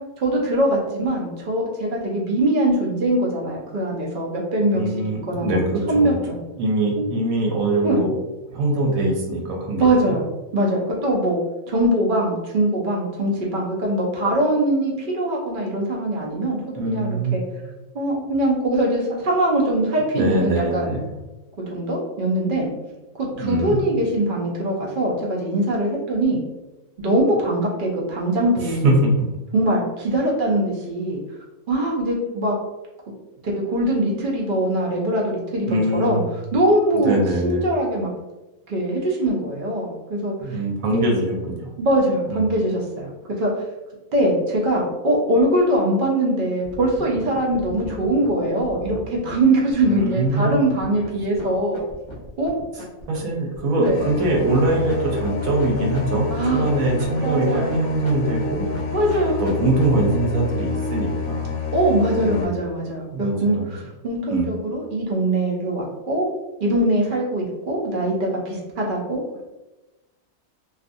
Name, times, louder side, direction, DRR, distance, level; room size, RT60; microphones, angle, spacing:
voice 1, 0.2-4.8 5.3-5.6 5.9-6.4 7.0-7.1 7.8-8.0 9.8-10.2 10.5-11.4 11.7-17.4 17.9-21.0 21.7-22.7 23.2-26.4 27.0-28.9 29.5-31.2 31.7-32.5 33.5-35.7 35.9-36.2 36.5-38.1 38.7-40.6 40.9-41.1 41.8-43.1 43.4-43.5 44.1-51.8 52.4-52.5 53.8-54.0 56.3-56.7 57.2-57.8 58.9-59.4 61.7-66.3 66.6-69.4, right 1 dB, 60° right, -2 dB, 0.5 m, -22 dB
voice 2, 4.7-6.1 6.6-8.1 8.5-10.1 16.8-17.6 20.1-21.0 23.4-23.8 28.6-29.1 35.7-36.2 36.9-37.6 40.4-41.7 42.3-42.4 49.8-50.5 52.7-58.6 59.4-61.5 62.2-62.5 63.1-63.7 64.3-64.5, right 2 dB, 90° right, 0 dB, 1.1 m, -23 dB
sound 1, 46.6-60.0, equal, 35° left, 0.9 m, -38 dB
sound 2, 53.9-62.4, left 4 dB, 70° left, 0.9 m, -28 dB
2.5 x 2.4 x 2.5 m, 1.0 s
omnidirectional pair, 1.4 m